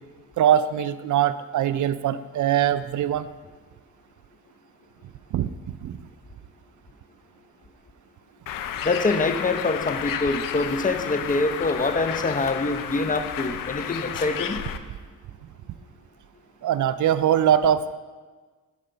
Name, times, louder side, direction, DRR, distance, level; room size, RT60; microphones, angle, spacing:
voice 1, 0.4-3.3 5.3-5.5 5.8-6.0 16.6-18.0, right 10 dB, 60° right, 14 dB, 0.4 m, -22 dB
Bird, 8.5-14.8, left 9 dB, 80° left, 0.7 m, -32 dB
voice 2, 8.8-14.6, left 3 dB, 25° left, 8 dB, 0.7 m, -25 dB
11.5 x 4.9 x 5.6 m, 1.4 s
cardioid pair, 90°, 34 cm